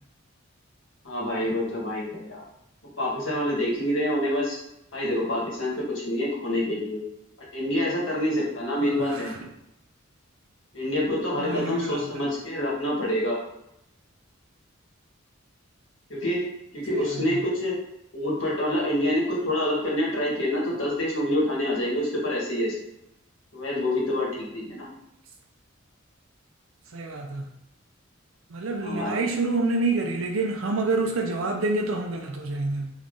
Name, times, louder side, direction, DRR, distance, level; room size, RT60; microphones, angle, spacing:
voice 1, 1.0-2.4 3.0-4.6 4.9-7.0 7.5-9.3 10.7-13.4 16.1-17.7 18.1-22.8 23.5-24.9 28.8-29.2, left 1 dB, 65° left, -5 dB, 1.5 m, -27 dB
voice 2, 8.8-9.4 11.4-12.2 16.9-17.4 26.9-27.5 28.5-32.9, right 3 dB, 80° right, 2 dB, 0.5 m, -28 dB
3.7 x 3.1 x 3.7 m, 0.83 s
head